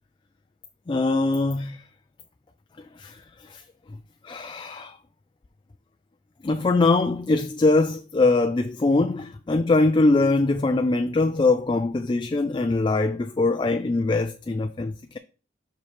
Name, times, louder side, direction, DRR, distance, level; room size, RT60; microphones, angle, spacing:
voice 1, 0.9-1.8 3.0-3.2 3.5-3.6 4.2-5.0 6.4-15.2, left 3 dB, 25° left, 0.3 m, -22 dB
6.1 x 5.1 x 3.5 m
head